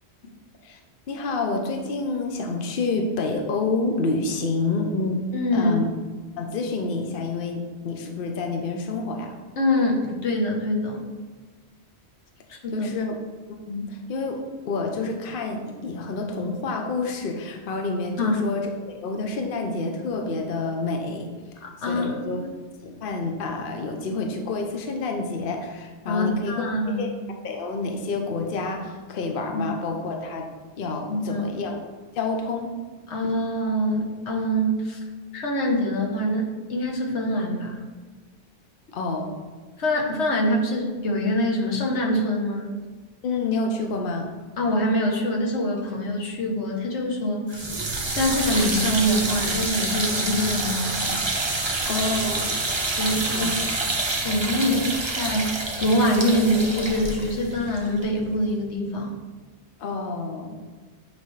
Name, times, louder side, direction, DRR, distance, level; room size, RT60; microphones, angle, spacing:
voice 1, 1.1-5.2 5.5-5.8 6.4-9.3 12.7-13.1 13.7-14.4 14.6-21.3 21.8-22.4 22.8-26.7 27.0-27.1 27.4-30.4 30.8-31.8 32.1-32.7 38.9-39.3 43.2-44.3 51.8-52.5 53.3-53.6 54.7-54.8 59.8-60.6, left 3 dB, 55° left, 3 dB, 0.9 m, -28 dB
voice 2, 5.3-5.7 9.6-11.1 12.5-12.9 18.2-18.4 21.6-22.5 26.1-27.1 29.5-29.7 31.1-31.5 33.1-35.0 35.3-37.8 39.8-42.7 44.6-47.7 48.1-51.2 52.9-53.5 54.2-54.8 55.2-55.5 55.8-59.1, equal, 80° left, 0 dB, 1.3 m, -24 dB
sound 1, 47.5-58.6, right 2 dB, 25° right, 0.8 m, -27 dB
7.9 x 5.0 x 3.2 m, 1.4 s
omnidirectional pair, 1.1 m